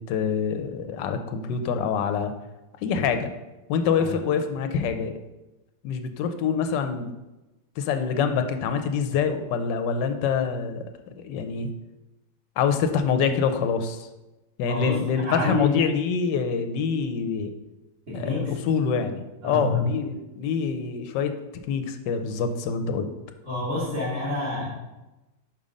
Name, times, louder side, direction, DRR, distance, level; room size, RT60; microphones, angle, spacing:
voice 1, 0.0-2.3 2.8-3.3 3.7-5.1 5.8-7.1 7.8-11.7 12.6-14.1 14.6-17.5 18.1-21.3 21.7-23.1, left 6 dB, 75° left, 7 dB, 1.3 m, -26 dB
voice 2, 14.7-15.8 18.1-18.5 19.4-19.9 23.4-24.7, left 3 dB, 40° right, -8 dB, 3.0 m, -27 dB
5.4 x 5.2 x 5.1 m, 1.0 s
omnidirectional pair, 2.0 m